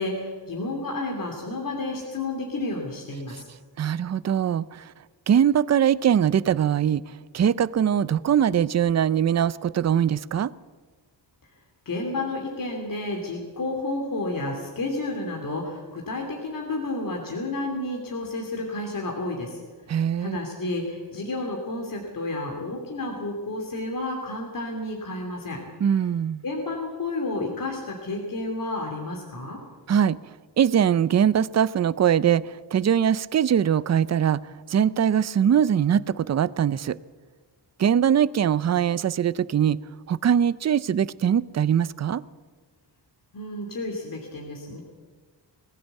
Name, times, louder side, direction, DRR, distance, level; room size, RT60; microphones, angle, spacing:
voice 1, 0.0-3.5 11.8-19.6 19.9-25.6 26.4-29.6 43.3-44.8, left 2 dB, 50° left, 3.0 m, -31 dB
voice 2, 3.8-4.9 5.3-7.0 7.3-10.5 19.9-20.4 25.8-26.4 29.9-30.2 30.6-34.4 34.7-37.0 37.8-39.8 40.1-42.2, right 9 dB, 40° right, 0.5 m, -22 dB
20.0 x 16.0 x 8.2 m
wide cardioid pair, 120°, 42 cm